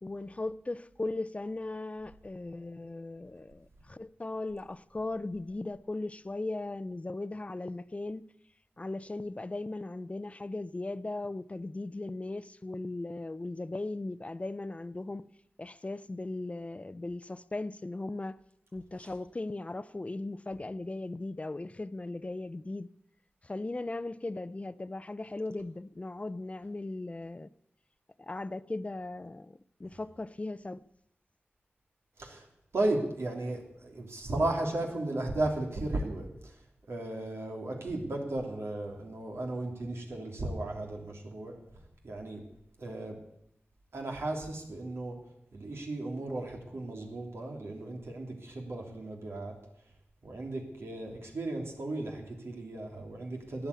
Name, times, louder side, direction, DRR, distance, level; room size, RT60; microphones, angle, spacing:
voice 1, 0.0-8.2 8.8-15.2 15.6-18.4 18.7-22.9 23.4-27.5 28.2-30.8, left 2 dB, 30° left, 0.5 m, -38 dB
voice 2, 32.7-36.6 36.9-41.6 42.0-42.4 42.8-43.2 43.9-45.2 45.5-49.6 50.2-53.7, right 2 dB, 85° right, 3.0 m, -35 dB
14.0 x 9.8 x 8.3 m
wide cardioid pair, 80°, 4 cm